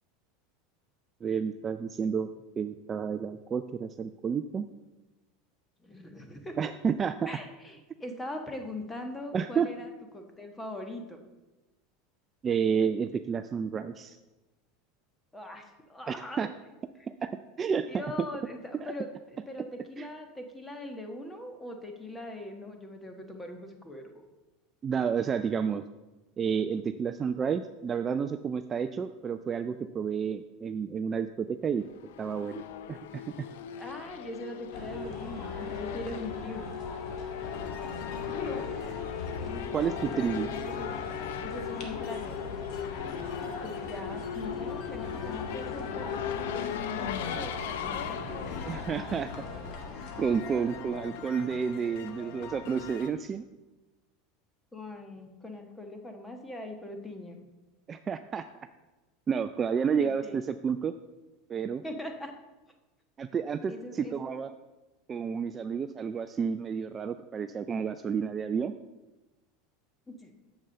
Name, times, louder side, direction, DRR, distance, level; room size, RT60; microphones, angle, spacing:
voice 1, 1.2-2.3 2.6-4.7 6.6-7.3 9.3-9.7 12.4-14.2 16.1-16.5 17.2-17.3 17.6-18.0 18.8-18.9 20.0-20.1 24.8-25.8 26.4-31.8 32.2-32.6 32.9-33.5 39.7-40.5 48.7-49.3 50.2-53.5 57.9-58.4 59.3-60.9 61.5-61.8 63.2-64.5 65.1-68.7, right 6 dB, 25° right, 9 dB, 0.4 m, -30 dB
voice 2, 5.8-6.5 7.3-11.2 15.3-16.5 17.0-17.1 17.9-24.2 33.8-36.7 39.4-41.0 41.4-42.4 43.6-48.6 54.7-57.5 60.0-60.4 61.8-62.3 63.7-64.3 70.1-70.3, left 1 dB, 10° left, 5 dB, 1.3 m, -42 dB
Race car auto racing / Accelerating revving vroom, 31.8-49.9, left 9 dB, 85° left, 0.6 m, -38 dB
sound 1, 34.7-51.0, left 3 dB, 50° left, 1.8 m, -40 dB
sound 2, 37.4-53.1, left 7 dB, 65° left, 0.9 m, -44 dB
7.2 x 6.9 x 6.6 m, 1.1 s
supercardioid pair, 130°, 0 cm